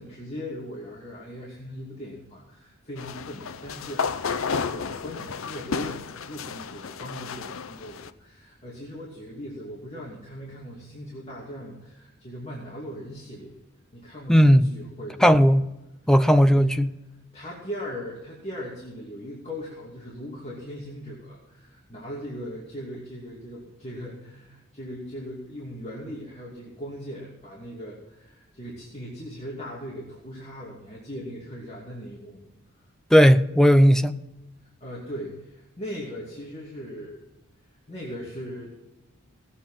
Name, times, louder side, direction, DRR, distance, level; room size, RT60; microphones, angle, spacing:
voice 1, 0.0-13.6 13.9-15.4 16.0-16.7 17.3-32.4 32.8-32.9 34.8-37.2 37.9-38.7, equal, 30° left, 2.6 m, -39 dB
sound 1, 3.0-8.1, left 5 dB, 70° left, 0.6 m, -32 dB
voice 2, 14.3-14.7 15.2-15.6 16.1-16.9 33.1-34.2, equal, 5° left, 0.5 m, -16 dB
18.0 x 8.3 x 5.7 m
head